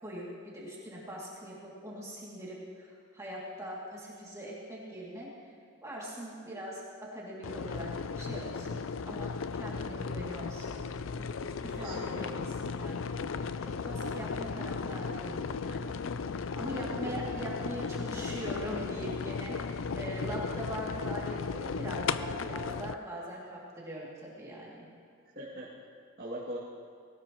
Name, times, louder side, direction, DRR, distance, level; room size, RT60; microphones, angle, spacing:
voice 1, 0.0-5.3 5.8-10.9 11.2-15.9 16.5-24.9, equal, 15° right, -6 dB, 2.6 m, -42 dB
sound 1, 7.4-22.9, left 5 dB, 65° left, 0.5 m, -36 dB
voice 2, 11.8-12.2 16.7-17.2 25.3-25.8 26.2-26.6, right 1 dB, 45° right, -8 dB, 2.5 m, -41 dB
21.0 x 18.0 x 3.1 m, 2.5 s
head